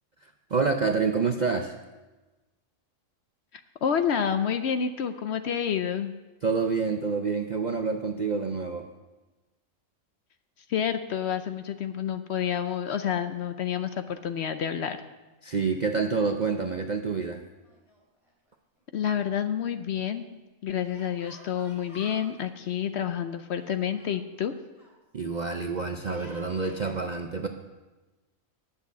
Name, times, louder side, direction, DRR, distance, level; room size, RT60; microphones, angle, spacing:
voice 1, 0.2-1.8 6.4-8.9 15.4-17.4 25.1-27.5, right 4 dB, 55° right, 5 dB, 0.5 m, -28 dB
voice 2, 3.8-6.1 10.7-15.0 18.9-24.5, left 8 dB, 60° left, 9 dB, 0.8 m, -29 dB
Yell, 17.6-18.5 18.7-18.8 20.9-22.3 23.6-25.0 25.9-26.9, equal, 20° left, 3.4 m, -51 dB
10.5 x 6.8 x 8.3 m, 1.2 s
omnidirectional pair, 1.5 m